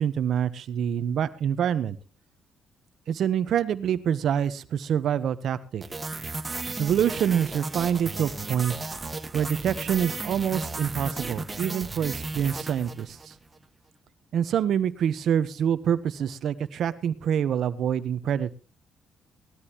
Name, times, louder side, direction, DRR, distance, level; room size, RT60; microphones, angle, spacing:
voice 1, 0.0-2.0 3.1-5.8 6.8-8.7 9.3-13.3 14.3-18.5, right 9 dB, 70° right, 13 dB, 1.1 m, -26 dB
sound 1, 5.8-13.4, right 3 dB, 25° right, 1.7 m, -34 dB
19.0 x 13.5 x 3.1 m, 0.32 s
cardioid pair, 90°, 0 cm